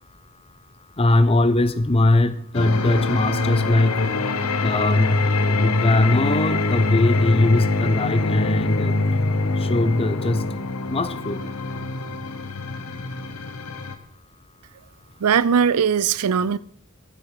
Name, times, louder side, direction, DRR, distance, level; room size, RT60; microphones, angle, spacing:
voice 1, 1.0-4.1 4.6-5.2 5.5-8.9 9.7-10.5 10.9-11.4, left 2 dB, 25° left, 0.7 m, -20 dB
sound 1, 2.5-14.0, left 2 dB, 80° left, 1.2 m, -24 dB
voice 2, 15.2-16.6, right 7 dB, 85° right, 0.5 m, -19 dB
14.0 x 7.8 x 5.6 m
head